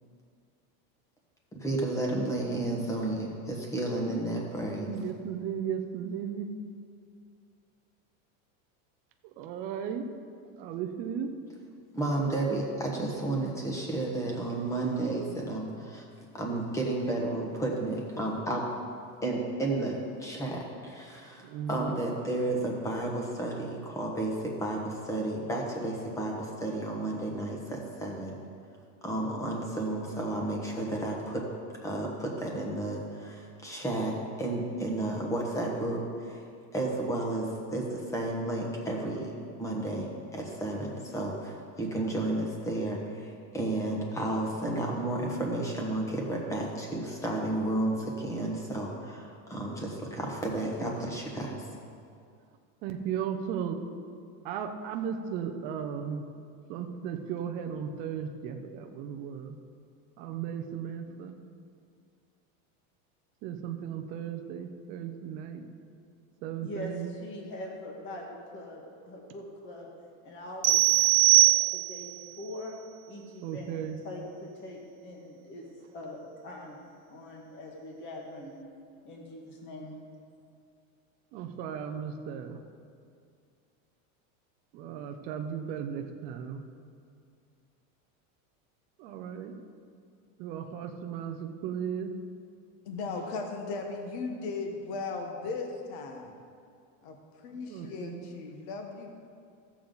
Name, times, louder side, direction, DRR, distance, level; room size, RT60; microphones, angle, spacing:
voice 1, 1.6-4.9 11.9-16.0 16.3-18.6 19.2-28.4 29.0-31.4 31.8-36.4 36.7-51.6, right 2 dB, 5° left, -1 dB, 1.2 m, -32 dB
voice 2, 4.8-6.5 9.2-10.1 10.6-11.3 13.0-13.1 21.4-22.0 52.8-53.8 54.4-56.3 56.7-59.6 60.2-61.3 63.4-65.6 66.4-67.1 73.4-74.0 81.3-82.6 84.7-86.6 89.0-89.5 90.4-92.1 97.7-98.3, right 8 dB, 25° right, 4 dB, 0.3 m, -36 dB
voice 3, 66.6-69.9 70.2-72.7 73.1-73.7 74.0-75.6 75.9-76.8 77.1-78.5 79.0-79.9, left 1 dB, 30° left, -1 dB, 1.6 m, -43 dB
sound 1, 70.6-72.2, right 19 dB, 85° right, 1.0 m, -21 dB
voice 4, 92.8-96.3 97.0-99.1, left 4 dB, 50° left, 3 dB, 1.2 m, -37 dB
15.5 x 7.1 x 3.9 m, 2.3 s
supercardioid pair, 170°, 41 cm